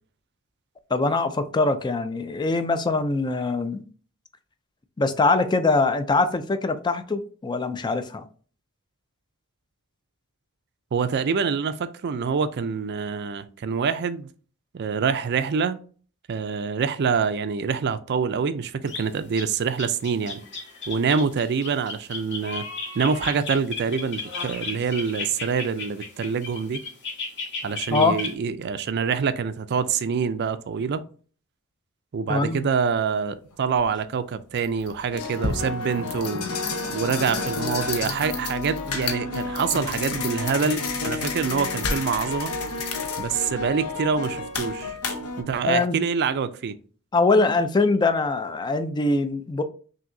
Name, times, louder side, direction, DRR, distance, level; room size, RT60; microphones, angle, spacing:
voice 1, 0.9-3.8 5.0-8.3 27.9-28.2 32.3-32.7 45.7-46.0 47.1-49.6, left 3 dB, 20° left, 0.3 m, -23 dB
voice 2, 10.9-14.3 14.7-15.8 16.3-20.4 20.9-22.7 22.9-26.8 27.6-31.0 32.1-36.5 36.9-42.5 43.2-45.0 45.4-46.8, right 6 dB, 50° right, 0.4 m, -26 dB
sound 1, 18.9-19.1 19.4-19.5 19.8-28.3, left 3 dB, 55° left, 2.0 m, -34 dB
sound 2, 33.7-33.9 34.5-45.4, left 3 dB, 80° left, 0.8 m, -30 dB
5.8 x 2.7 x 2.6 m
head